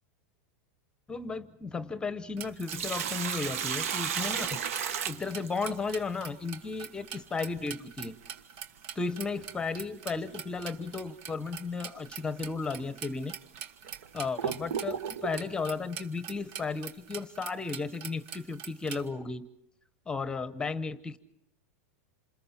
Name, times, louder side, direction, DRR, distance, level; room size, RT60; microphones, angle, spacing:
voice 1, 1.1-4.6 5.1-8.1 8.9-13.4 14.1-19.4 20.1-21.2, left 4 dB, 10° left, 13 dB, 0.9 m, -34 dB
sound 1, 2.4-19.0, right 8 dB, 50° right, 2.0 m, -44 dB
Sink (filling or washing), 2.4-6.0 8.4-8.5 10.4-10.6 11.1-11.2 12.0-12.1 12.8-12.9 13.5-15.4, right 8 dB, 75° right, 1.5 m, -34 dB
28.0 x 27.5 x 4.3 m, 0.84 s
supercardioid pair, 145°, 8 cm